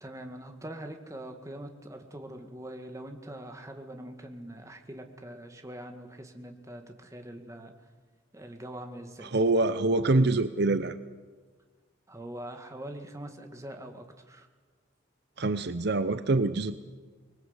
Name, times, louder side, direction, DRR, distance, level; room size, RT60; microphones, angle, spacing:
voice 1, 0.0-7.7 8.3-9.3 12.1-14.5, right 1 dB, 15° right, 5 dB, 2.1 m, -43 dB
voice 2, 9.2-11.0 15.4-16.8, right 2 dB, 60° right, 12 dB, 0.8 m, -25 dB
25.0 x 20.5 x 8.1 m, 1.4 s
head